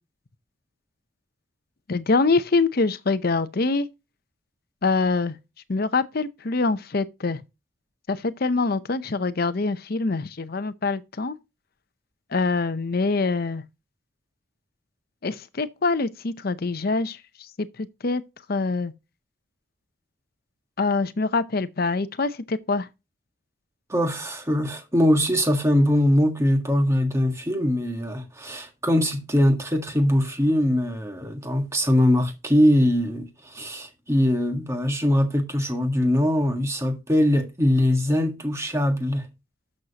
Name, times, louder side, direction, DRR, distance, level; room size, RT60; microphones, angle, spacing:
voice 1, 1.9-3.9 4.8-5.4 5.7-7.4 8.1-11.4 12.3-13.6 15.2-18.2 18.5-18.9 20.8-22.9, left 3 dB, 45° left, 0.7 m, -24 dB
voice 2, 23.9-33.3 33.5-39.2, left 1 dB, 15° right, 1.5 m, -22 dB
12.0 x 6.5 x 2.9 m
head